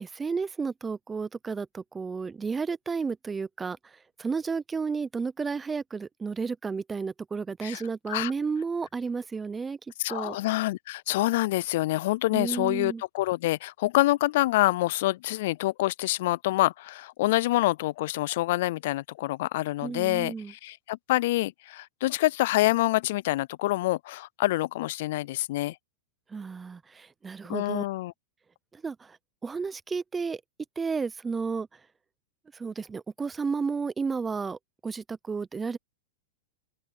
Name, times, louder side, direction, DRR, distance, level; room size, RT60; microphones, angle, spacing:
voice 1, 0.0-9.8 10.1-10.4 12.3-13.0 19.8-20.5 26.3-27.8 28.7-29.2 29.4-30.4 30.8-31.7 32.5-35.8, right 5 dB, 15° right, 0.6 m, -32 dB
voice 2, 10.0-25.8 27.5-28.1, left 17 dB, 60° left, 0.3 m, -26 dB
open air
hypercardioid pair, 135°, 0 cm